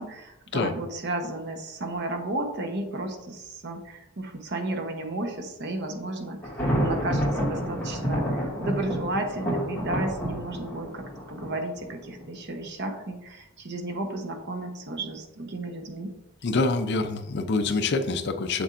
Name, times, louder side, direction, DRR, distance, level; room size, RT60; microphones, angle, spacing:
voice 1, 0.0-6.4 6.8-16.1, right 2 dB, 50° right, 4 dB, 0.9 m, -33 dB
Thunder, 6.4-12.2, equal, 10° left, 2.4 m, -29 dB
voice 2, 16.4-18.6, left 3 dB, 50° left, 7 dB, 0.5 m, -26 dB
7.0 x 6.8 x 2.5 m, 0.92 s
head